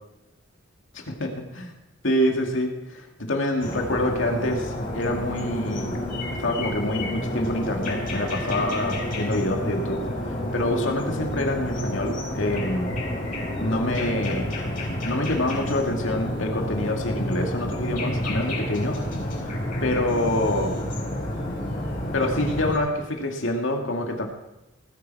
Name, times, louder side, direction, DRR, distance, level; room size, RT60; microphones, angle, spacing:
voice 1, 1.1-1.7 2.0-6.0 6.4-12.9 13.6-14.5 15.1-19.0 19.8-20.7 22.1-24.3, left 1 dB, 75° left, 2 dB, 2.4 m, -26 dB
sound 1, 3.6-22.8, left 1 dB, 45° left, 5.4 m, -29 dB
19.0 x 9.8 x 4.7 m, 0.92 s
head